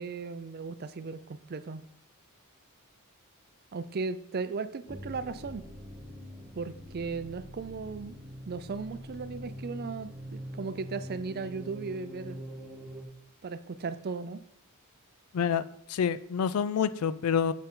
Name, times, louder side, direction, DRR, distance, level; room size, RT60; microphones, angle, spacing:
voice 1, 0.0-1.8 3.7-5.6 6.5-8.2 8.5-12.4 13.4-14.4, right 4 dB, 45° right, 13 dB, 0.4 m, -36 dB
sound 1, 4.9-13.0, equal, ahead, 1.3 m, -44 dB
voice 2, 15.9-17.5, left 7 dB, 80° left, 15 dB, 0.4 m, -27 dB
7.1 x 6.7 x 3.7 m, 0.72 s
head